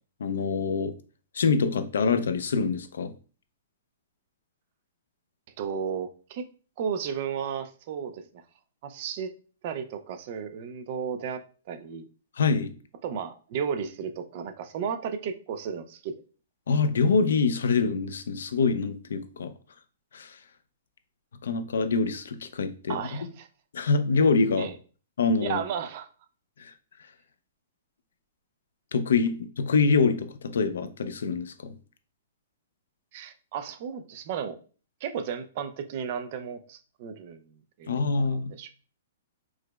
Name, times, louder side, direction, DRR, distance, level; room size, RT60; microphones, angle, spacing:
voice 1, 0.2-0.9 1.3-3.1 12.4-12.7 16.7-19.5 20.1-20.4 21.4-23.2 23.7-24.7 25.2-25.6 26.6-26.7 28.9-31.5 37.9-38.5, left 4 dB, 85° left, 0.4 m, -25 dB
voice 2, 5.6-6.5 6.8-8.5 8.8-9.3 9.6-12.0 13.0-16.1 22.9-23.5 24.6-24.7 25.4-26.1 33.1-34.6 35.0-38.7, right 7 dB, 35° right, 0.3 m, -34 dB
4.6 x 2.0 x 2.2 m
hypercardioid pair, 170°, 0 cm